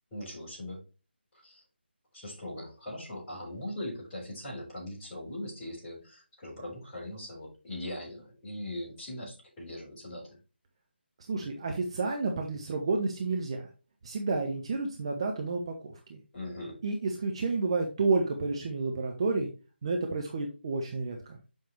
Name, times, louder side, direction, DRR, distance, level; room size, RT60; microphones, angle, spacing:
voice 1, 0.1-0.8 1.4-1.6 2.1-10.4 16.3-16.8, left 1 dB, 15° left, -7 dB, 4.3 m, -40 dB
voice 2, 11.3-13.6 14.0-16.2 16.8-19.5 19.8-21.4, right 3 dB, 30° right, 3 dB, 0.8 m, -30 dB
7.5 x 5.5 x 3.3 m, 0.33 s
figure-of-eight pair, 155°, 6 cm